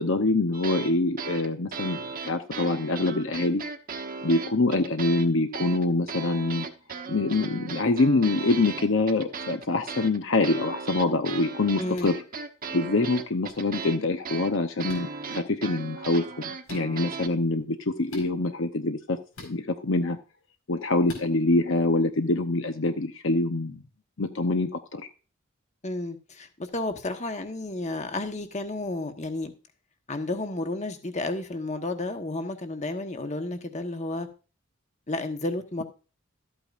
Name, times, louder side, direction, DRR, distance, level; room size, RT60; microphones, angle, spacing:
voice 1, 0.0-3.6 4.2-6.7 7.1-12.2 12.7-20.2 20.7-23.8 24.2-25.0, left 2 dB, 60° left, 7 dB, 0.8 m, -25 dB
sound 1, 0.5-0.9 1.2-5.3 5.5-17.3, right 5 dB, 40° right, 1.0 m, -37 dB
voice 2, 11.8-12.2 25.8-29.5 30.1-34.3 35.1-35.8, left 2 dB, 35° left, 7 dB, 1.2 m, -32 dB
sound 2, 11.9-12.2 13.4-13.5 14.9-15.0 16.6-16.8 18.1-18.3 19.3-19.5 21.0-21.3, left 2 dB, 80° left, 4.9 m, -44 dB
13.0 x 8.7 x 2.5 m, 0.35 s
head